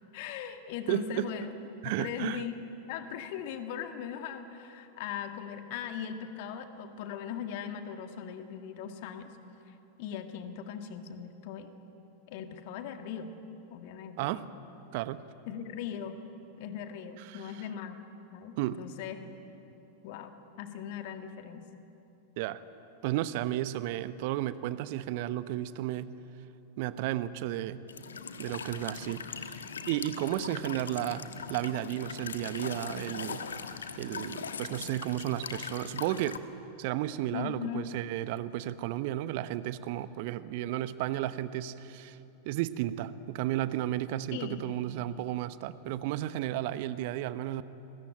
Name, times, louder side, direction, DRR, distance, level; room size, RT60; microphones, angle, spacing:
voice 1, 0.1-1.5 1.8-9.3 9.7-11.7 12.3-13.4 13.7-14.4 15.5-16.2 16.6-18.0 18.3-19.2 20.0-21.7 37.3-37.9 44.3-44.8, left 8 dB, 50° left, 7 dB, 2.1 m, -39 dB
voice 2, 0.9-1.3 1.8-2.4 14.2-14.5 14.9-15.2 17.2-17.4 18.6-18.8 22.4-22.6 23.0-26.1 26.8-27.8 28.4-29.6 29.9-33.4 34.0-36.4 36.8-42.2 42.4-47.6, right 14 dB, 50° right, 14 dB, 1.0 m, -33 dB
Walk footsteps / Chirp tweet / Stream, 27.9-36.4, left 6 dB, 70° left, 1.3 m, -40 dB
29.5 x 21.5 x 9.0 m, 3.0 s
figure-of-eight pair, 90°, 0 cm